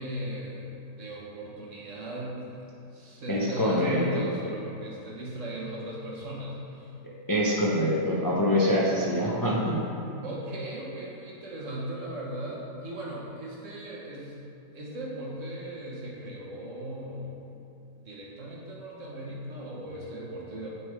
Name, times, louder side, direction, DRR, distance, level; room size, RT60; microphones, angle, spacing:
voice 1, 0.0-6.9 10.2-14.4 14.7-17.4 17.9-20.7, equal, 50° right, -4 dB, 1.4 m, -38 dB
voice 2, 3.3-4.2 7.0-9.8, equal, 20° left, -6 dB, 0.5 m, -25 dB
9.5 x 3.6 x 4.7 m, 2.9 s
omnidirectional pair, 1.8 m